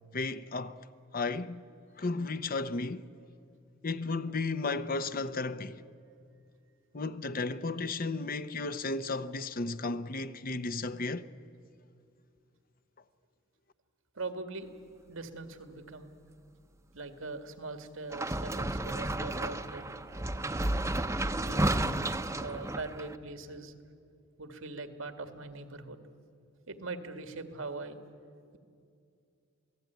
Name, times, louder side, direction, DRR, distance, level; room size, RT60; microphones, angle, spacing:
voice 1, 0.1-0.8 1.1-1.6 2.0-3.1 3.8-5.8 6.9-11.3, left 3 dB, 45° left, 0.8 m, -34 dB
voice 2, 14.2-14.7 15.1-16.2 16.9-20.0 21.4-21.9 22.4-23.7 24.4-26.0 26.7-28.0, right 3 dB, 90° right, 2.0 m, -41 dB
sound 1, 18.1-23.2, right 1 dB, 15° right, 0.8 m, -32 dB
27.5 x 18.0 x 9.3 m
head